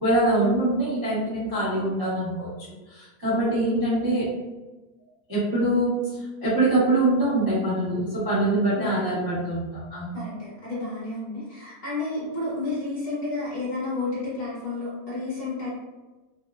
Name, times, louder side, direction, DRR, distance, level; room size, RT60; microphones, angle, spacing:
voice 1, 0.0-2.5 2.9-4.3 5.3-10.2, right 1 dB, 35° right, -11 dB, 0.3 m, -24 dB
voice 2, 3.5-4.0 8.7-9.2 10.1-15.7, left 3 dB, 45° left, -8 dB, 0.9 m, -31 dB
2.8 x 2.0 x 2.2 m, 1.1 s
omnidirectional pair, 1.7 m